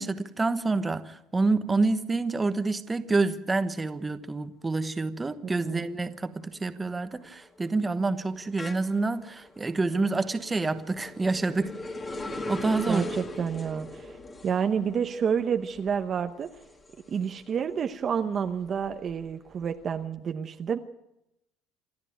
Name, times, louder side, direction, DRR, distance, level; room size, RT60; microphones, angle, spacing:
voice 1, 0.0-11.7 12.5-13.0, right 3 dB, 15° right, 1.1 m, -28 dB
voice 2, 5.4-5.9 12.9-14.2 14.4-16.5 17.1-20.8, right 7 dB, 35° right, 0.9 m, -29 dB
sound 1, 5.7-6.1 6.4-17.7 18.1-19.8, left 2 dB, 20° left, 2.2 m, -41 dB
27.5 x 12.0 x 9.1 m
cardioid pair, 145°, 0 cm